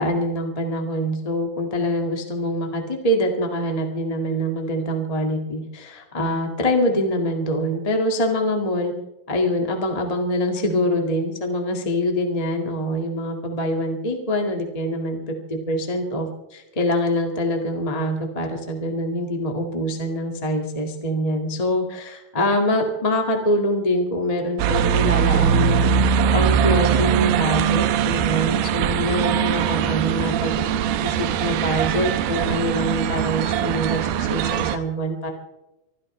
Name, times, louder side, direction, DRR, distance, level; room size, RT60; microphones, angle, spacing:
voice 1, 0.0-8.9 9.3-25.9 26.3-30.6 31.0-35.3, equal, 25° left, 2 dB, 0.8 m, -24 dB
sound 1, 24.6-34.8, right 8 dB, 80° right, 2.6 m, -21 dB
25.0 x 15.0 x 3.3 m, 0.96 s
omnidirectional pair, 4.3 m